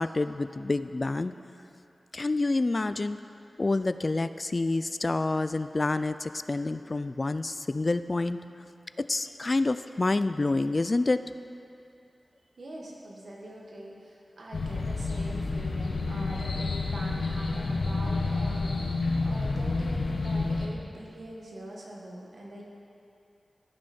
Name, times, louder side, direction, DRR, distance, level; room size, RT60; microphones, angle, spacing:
voice 1, 0.0-1.3 2.1-3.2 3.6-8.4 9.0-11.2, left 2 dB, 45° left, 12 dB, 0.3 m, -28 dB
voice 2, 12.6-22.6, right 1 dB, 75° right, -2 dB, 1.7 m, -43 dB
sound 1, 14.5-20.7, left 3 dB, 80° left, 0.9 m, -29 dB
15.0 x 6.2 x 4.4 m, 2.6 s
wide cardioid pair, 60°, 0 cm